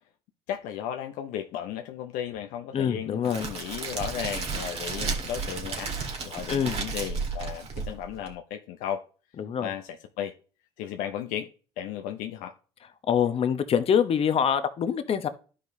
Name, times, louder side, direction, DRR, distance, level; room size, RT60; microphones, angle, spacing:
voice 1, 0.5-5.9 6.2-9.0 9.6-10.3 10.8-11.5 11.8-12.5, left 10 dB, 75° left, 0.6 m, -35 dB
voice 2, 2.7-3.4 6.5-6.8 9.4-9.7 13.1-15.3, left 8 dB, 45° left, 0.9 m, -25 dB
Crackle, 3.2-8.3, right 4 dB, 50° right, 1.9 m, -33 dB
11.5 x 5.0 x 2.7 m
hypercardioid pair, 65°, 13 cm